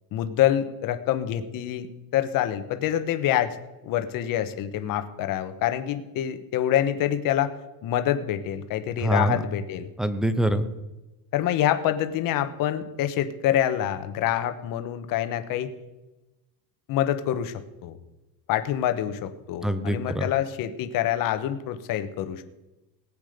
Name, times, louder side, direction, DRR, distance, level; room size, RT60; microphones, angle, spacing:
voice 1, 0.1-1.9 2.1-3.6 3.8-7.5 7.8-9.9 11.3-15.7 16.9-18.0 18.5-22.4, left 11 dB, 45° left, 9 dB, 1.3 m, -26 dB
voice 2, 9.0-9.4 10.0-10.7 19.6-20.3, right 1 dB, ahead, 11 dB, 0.5 m, -24 dB
19.5 x 8.7 x 5.2 m, 1.0 s
cardioid pair, 160°, 47 cm